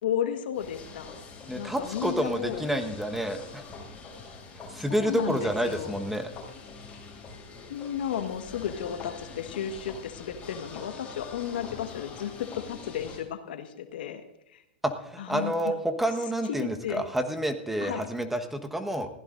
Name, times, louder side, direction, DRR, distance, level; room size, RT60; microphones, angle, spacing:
voice 1, 0.0-1.1 1.5-2.7 4.9-6.0 7.7-14.2 14.5-14.6 15.2-15.8 16.4-17.0 17.8-18.1, left 9 dB, 75° left, 7 dB, 1.5 m, -33 dB
sound 1, 0.5-13.2, left 4 dB, 25° left, 6.5 m, -44 dB
voice 2, 1.5-3.7 4.7-6.3 14.8-19.1, right 1 dB, 5° right, 5 dB, 1.3 m, -29 dB
21.0 x 15.5 x 2.6 m, 0.88 s
hypercardioid pair, 110°, 5 cm